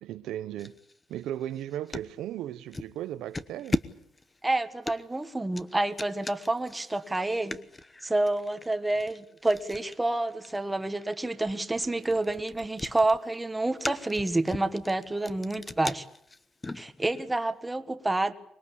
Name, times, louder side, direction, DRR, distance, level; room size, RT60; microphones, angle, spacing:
voice 1, 0.0-0.8 1.1-3.8, right 12 dB, 85° right, 1.0 m, -36 dB
sound 1, 0.6-2.1 2.7-3.0 3.3-17.3, left 2 dB, 15° left, 1.1 m, -39 dB
voice 2, 4.4-7.6 8.0-16.0 16.7-18.3, right 2 dB, 10° right, 1.5 m, -28 dB
25.0 x 21.5 x 8.5 m
cardioid pair, 145°, 0 cm